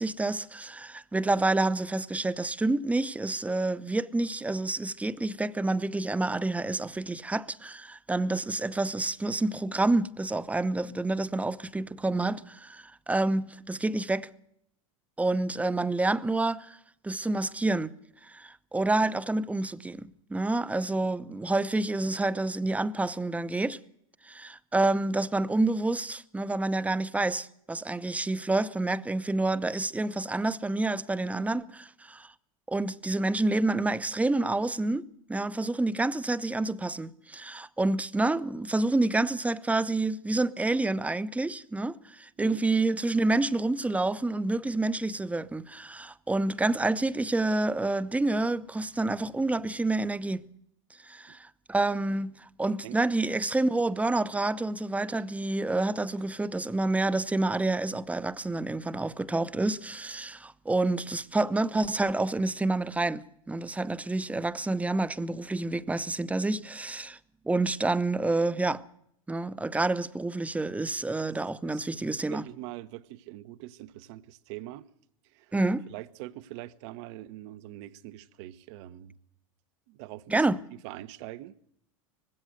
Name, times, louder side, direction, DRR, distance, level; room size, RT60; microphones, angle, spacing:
voice 1, 0.0-14.3 15.2-16.8 17.0-17.9 18.2-23.8 24.2-32.3 32.7-50.4 51.0-67.2 67.4-68.8 69.3-72.4 75.5-75.9 80.3-80.6, right 2 dB, 10° right, 0.9 m, -28 dB
voice 2, 71.3-71.8 72.3-74.9 75.2-75.5 75.9-79.2 79.9-80.5 80.8-81.5, right 15 dB, 55° right, 1.2 m, -43 dB
20.5 x 16.5 x 8.0 m
hypercardioid pair, 95°, 17 cm